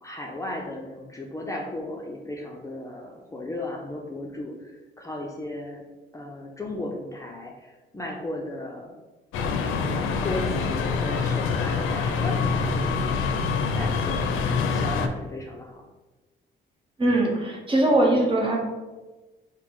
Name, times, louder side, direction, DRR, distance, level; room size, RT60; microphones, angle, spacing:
voice 1, 0.0-4.7 5.0-5.8 6.1-8.9 10.2-13.2 13.7-15.8, left 1 dB, 15° left, -2 dB, 0.5 m, -35 dB
sound 1, 9.3-15.1, left 5 dB, 85° left, 0.4 m, -25 dB
voice 2, 17.0-18.6, right 1 dB, 25° right, -1 dB, 0.9 m, -21 dB
3.9 x 2.1 x 4.4 m, 1.2 s
cardioid pair, 90°, 20 cm